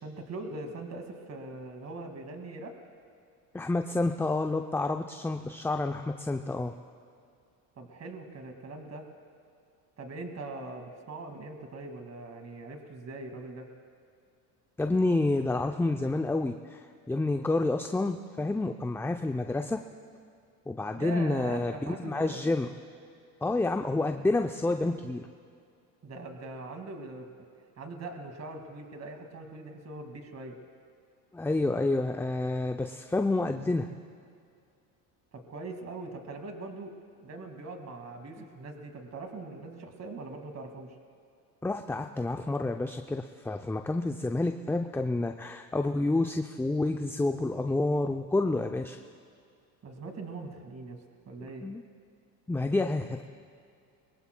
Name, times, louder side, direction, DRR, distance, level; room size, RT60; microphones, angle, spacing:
voice 1, 0.0-2.8 7.8-9.1 10.0-13.7 20.9-22.5 26.0-27.3 27.8-30.6 35.3-36.9 37.2-41.0 49.8-51.7, right 2 dB, 35° right, 4 dB, 2.2 m, -41 dB
voice 2, 3.5-6.7 14.8-19.8 20.7-22.7 23.4-25.3 31.3-33.9 41.6-49.0 51.6-51.8 52.5-53.2, left 2 dB, 5° left, 6 dB, 0.4 m, -29 dB
23.0 x 21.0 x 2.3 m, 2.3 s
supercardioid pair, 80°, 45 cm